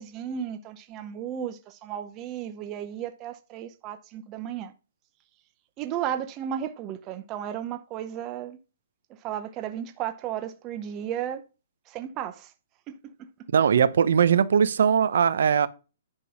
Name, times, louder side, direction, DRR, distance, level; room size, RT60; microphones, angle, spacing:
voice 1, 0.0-4.7 5.8-8.6 9.2-11.4 11.9-12.5 12.9-13.3, right 10 dB, 20° right, 0.7 m, -34 dB
voice 2, 13.5-15.7, right 7 dB, 70° right, 0.9 m, -20 dB
10.0 x 3.8 x 6.4 m
hypercardioid pair, 165°, 0 cm